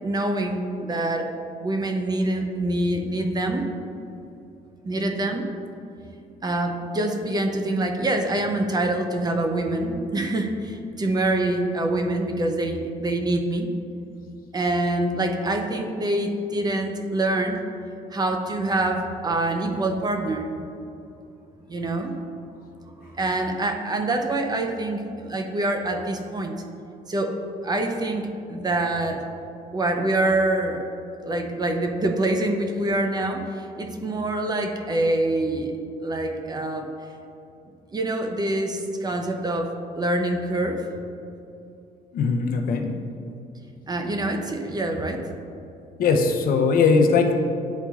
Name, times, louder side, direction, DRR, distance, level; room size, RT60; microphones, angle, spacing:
voice 1, 0.0-1.3 1.6-3.7 4.8-5.5 6.4-13.7 14.5-17.6 18.1-20.5 21.7-22.1 23.0-26.5 27.1-27.4 27.6-29.2 29.7-30.8 31.2-35.7 36.0-36.9 37.9-40.8 43.9-45.2, right 2 dB, 25° right, 4 dB, 0.6 m, -25 dB
voice 2, 42.1-43.0 46.0-47.3, left 4 dB, 60° left, 4 dB, 0.6 m, -20 dB
9.9 x 4.0 x 2.4 m, 2.7 s
cardioid pair, 110°, 17 cm